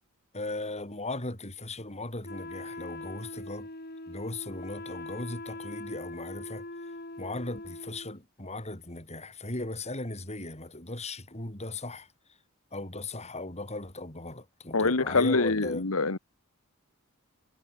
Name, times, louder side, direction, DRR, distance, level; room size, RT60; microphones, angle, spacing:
voice 1, 0.3-3.7 4.1-12.1 12.7-15.9, left 2 dB, 30° left, 6.6 m, -38 dB
Wind instrument woodwind instrument, 2.2-8.2, left 2 dB, 45° left, 6.6 m, -42 dB
voice 2, 14.7-16.2, left 3 dB, 80° left, 1.5 m, -25 dB
head